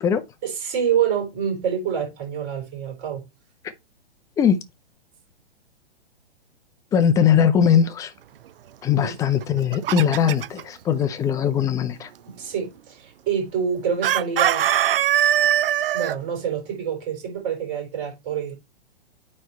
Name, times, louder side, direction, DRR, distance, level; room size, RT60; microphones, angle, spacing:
voice 1, 0.4-3.2 9.0-9.1 12.3-14.7 15.9-18.5, right 7 dB, 30° right, 4.5 m, -27 dB
voice 2, 6.9-8.1 8.8-12.1, left 8 dB, 10° left, 0.5 m, -20 dB
Chicken rooster, 9.4-10.6 14.0-16.2, right 11 dB, 60° right, 0.5 m, -21 dB
9.0 x 3.3 x 4.4 m
figure-of-eight pair, 120°, 32 cm